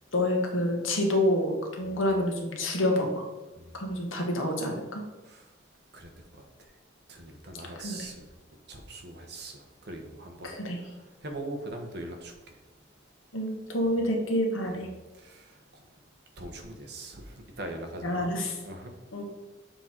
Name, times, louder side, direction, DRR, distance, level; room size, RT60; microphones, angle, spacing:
voice 1, 0.1-3.2 3.7-5.0 7.8-8.1 10.4-10.8 13.3-14.9 18.0-18.5 19.1-19.2, left 1 dB, 85° left, 1 dB, 1.4 m, -28 dB
voice 2, 5.9-6.7 7.1-8.2 8.7-12.6 13.8-13.9 14.7-14.8 15.1-15.9 16.4-18.3 18.6-18.9, right 1 dB, 55° right, 3 dB, 1.0 m, -42 dB
6.9 x 3.9 x 4.4 m, 1.2 s
head